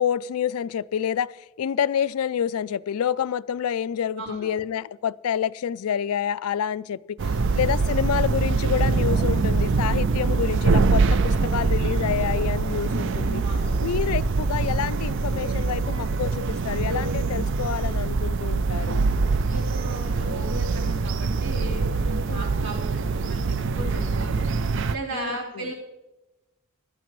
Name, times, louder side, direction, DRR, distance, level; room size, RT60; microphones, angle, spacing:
voice 1, 0.0-13.4 13.8-19.0 22.3-22.5 25.1-25.7, left 8 dB, 75° left, 0.3 m, -28 dB
voice 2, 4.2-4.5 7.4-7.6 13.4-13.8 19.5-24.5 24.9-25.7, right 1 dB, 70° right, 4.0 m, -37 dB
sound 1, 7.2-25.0, right 4 dB, 55° right, 0.4 m, -24 dB
17.0 x 12.0 x 3.1 m
head